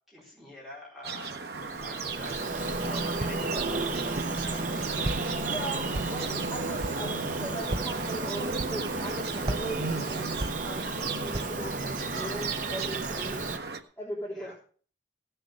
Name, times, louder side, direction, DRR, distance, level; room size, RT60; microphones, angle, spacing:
voice 1, 0.1-1.4 1.8-5.1 13.1-13.4 14.3-14.5, left 1 dB, ahead, -6 dB, 4.5 m, -47 dB
sound 1, 1.0-13.8, right 4 dB, 65° right, 1.2 m, -37 dB
Bird vocalization bird call bird song, 1.5-13.6, right 3 dB, 45° right, 1.0 m, -33 dB
Walk footsteps, 3.2-3.6 4.1-4.7 5.0-5.5 5.9-6.4 6.8-7.1 7.6-8.1 8.5-9.1 9.4-11.0 11.3-11.7, right 2 dB, 30° right, 0.5 m, -36 dB
voice 2, 5.4-13.3 14.0-14.5, right 1 dB, 15° left, -6 dB, 3.4 m, -39 dB
16.5 x 6.8 x 6.4 m, 0.44 s
head